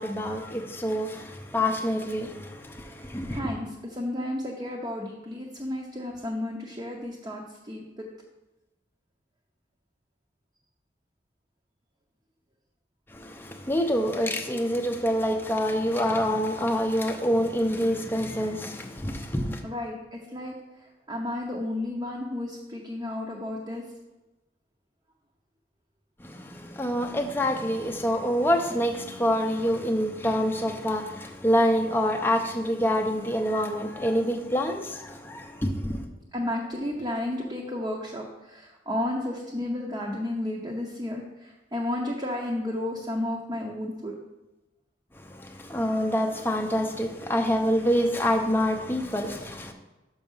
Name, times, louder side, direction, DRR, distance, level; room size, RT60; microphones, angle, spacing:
voice 1, 0.0-3.5 13.1-19.6 26.2-36.1 45.1-49.7, equal, 10° left, 4 dB, 0.6 m, -26 dB
voice 2, 2.9-8.1 19.6-23.9 36.3-44.2, left 1 dB, 20° right, -1 dB, 0.8 m, -32 dB
6.2 x 5.9 x 5.5 m, 1.1 s
head